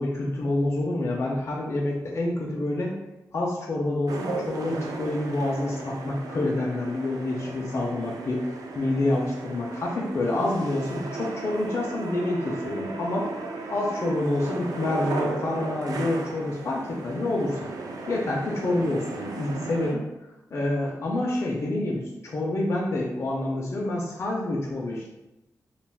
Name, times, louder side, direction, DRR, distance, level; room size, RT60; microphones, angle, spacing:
voice 1, 0.0-3.0 3.3-13.3 13.7-17.6 18.1-20.0 20.5-25.1, left 2 dB, 45° left, -2 dB, 0.4 m, -27 dB
sound 1, 4.1-19.9, right 3 dB, 70° right, 0.3 m, -36 dB
2.4 x 2.3 x 3.3 m, 0.96 s
wide cardioid pair, 155°, 6 cm